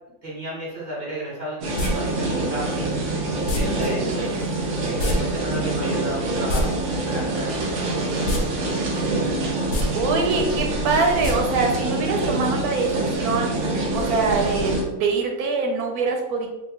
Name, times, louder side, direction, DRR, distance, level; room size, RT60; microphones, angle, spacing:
voice 1, 0.2-2.8 3.5-4.0 4.8-9.4, right 1 dB, 35° right, -8 dB, 1.2 m, -34 dB
sound 1, 1.6-14.8, right 2 dB, 60° right, 0.9 m, -25 dB
sound 2, 1.8-1.9 3.5-3.6 5.0-5.2 5.4-5.5 6.3-6.6 8.2-8.4 8.8-8.9 9.6-9.8 11.2-11.3 11.7-11.8, left 2 dB, 75° left, 1.1 m, -24 dB
voice 2, 3.6-4.4 10.0-13.5 13.9-16.5, right 4 dB, 85° right, 2 dB, 1.2 m, -24 dB
2.9 x 2.3 x 3.4 m, 1.0 s
omnidirectional pair, 1.6 m